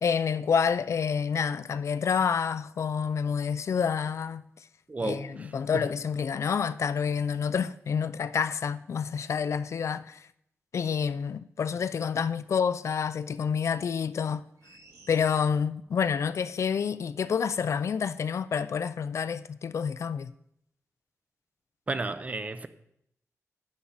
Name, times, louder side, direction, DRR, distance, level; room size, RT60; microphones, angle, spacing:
voice 1, 0.0-4.4 5.0-10.3 10.7-14.5 15.1-20.3, left 6 dB, 65° left, 0.4 m, -28 dB
voice 2, 4.9-5.5 21.9-22.7, right 3 dB, 25° right, 0.7 m, -32 dB
sound 1, 14.6-16.1 16.5-16.6, right 3 dB, 75° right, 2.2 m, -55 dB
11.5 x 9.9 x 4.0 m
wide cardioid pair, 160°, 5 cm